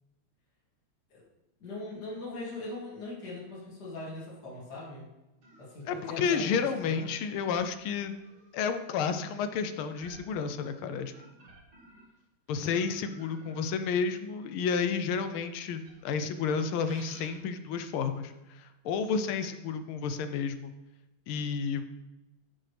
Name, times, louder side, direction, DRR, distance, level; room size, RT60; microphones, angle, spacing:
voice 1, 1.6-5.0 5.6-7.1, left 2 dB, 50° left, -7 dB, 2.8 m, -40 dB
sound 1, 5.4-12.2 12.6-15.0 15.7-18.3, right 2 dB, 65° right, 2.7 m, -56 dB
voice 2, 5.9-8.2 8.5-11.1 12.5-20.7 21.3-21.9, left 6 dB, 80° left, 10 dB, 1.4 m, -31 dB
9.8 x 6.4 x 3.3 m, 1.0 s
omnidirectional pair, 2.4 m